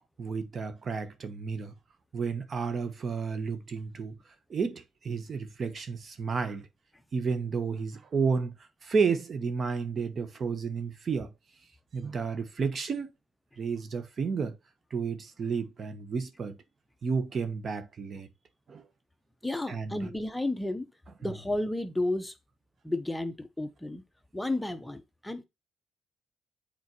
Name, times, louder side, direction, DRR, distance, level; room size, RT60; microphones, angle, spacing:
voice 1, 0.2-1.7 2.1-4.2 4.5-6.7 7.1-8.5 8.8-11.3 11.9-13.1 13.6-14.6 14.9-16.6 17.0-18.3 18.7-18.8 19.7-20.1, right 5 dB, 45° right, 1.1 m, -31 dB
voice 2, 19.4-20.9 21.2-22.3 22.8-24.0 24.3-25.4, left 2 dB, 10° left, 0.8 m, -32 dB
8.1 x 4.2 x 3.0 m
cardioid pair, 90°, 0 cm